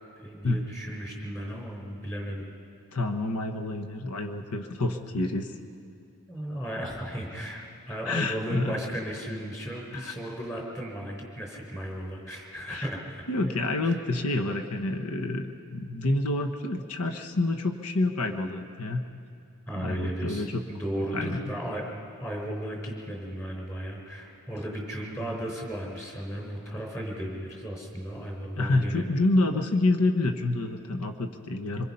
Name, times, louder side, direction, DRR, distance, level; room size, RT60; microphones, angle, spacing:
voice 1, 0.2-2.5 6.3-7.6 7.9-13.2 13.8-14.0 19.7-21.8 22.2-29.1, right 1 dB, 15° left, 0 dB, 4.2 m, -35 dB
voice 2, 2.9-5.6 8.1-8.8 9.9-10.1 12.7-12.8 13.3-19.0 19.8-20.6 21.1-21.5 28.6-31.8, left 2 dB, 90° left, 6 dB, 1.1 m, -28 dB
25.5 x 22.0 x 5.6 m, 2.5 s
head